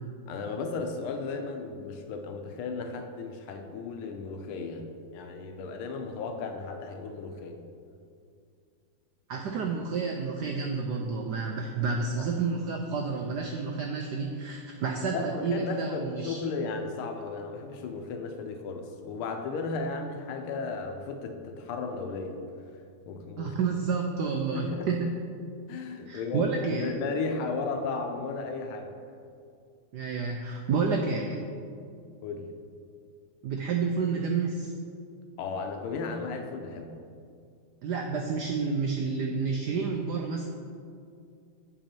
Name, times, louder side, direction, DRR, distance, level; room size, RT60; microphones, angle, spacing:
voice 1, 0.3-4.9 5.1-7.6 12.1-12.3 15.1-22.4 23.1-23.5 24.5-24.9 25.7-28.9 32.2-32.5 35.4-37.0, left 4 dB, 80° left, 5 dB, 1.6 m, -35 dB
voice 2, 9.3-16.4 23.4-25.2 26.1-26.9 29.9-31.5 33.4-34.7 37.8-40.5, right 5 dB, 85° right, 2 dB, 0.9 m, -30 dB
7.8 x 5.6 x 4.4 m, 2.4 s
omnidirectional pair, 2.4 m